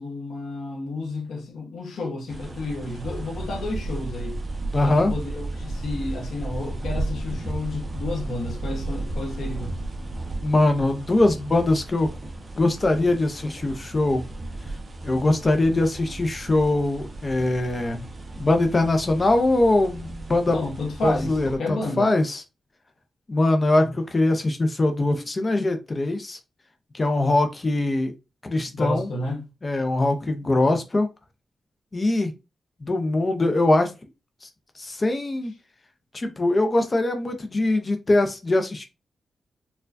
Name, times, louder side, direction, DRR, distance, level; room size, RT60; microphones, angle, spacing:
voice 1, 0.0-4.4 4.8-9.8 20.5-22.1 28.7-29.5, left 2 dB, 80° left, 1.0 m, -31 dB
sound 1, 2.3-21.6, right 2 dB, 30° right, 0.7 m, -34 dB
voice 2, 4.7-5.1 10.4-12.1 12.6-14.2 15.0-18.1 18.4-20.6 21.0-22.4 23.3-26.4 26.9-28.1 28.4-29.1 29.6-31.1 31.9-32.3 32.8-33.9 34.4-34.5 34.8-35.5 36.1-38.8, left 2 dB, 25° left, 0.5 m, -22 dB
4.4 x 2.2 x 2.5 m
wide cardioid pair, 155°, 0 cm